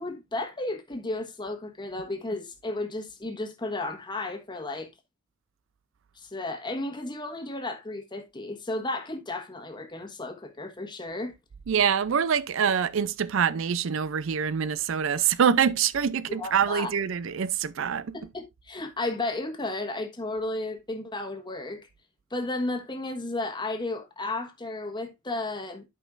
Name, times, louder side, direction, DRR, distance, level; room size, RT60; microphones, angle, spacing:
voice 1, 0.0-4.9 6.2-11.3 16.3-16.9 18.1-21.8 22.3-25.8, left 2 dB, 20° left, 1.3 m, -33 dB
voice 2, 11.7-18.3, right 7 dB, 70° right, 0.4 m, -25 dB
12.0 x 5.4 x 2.5 m
head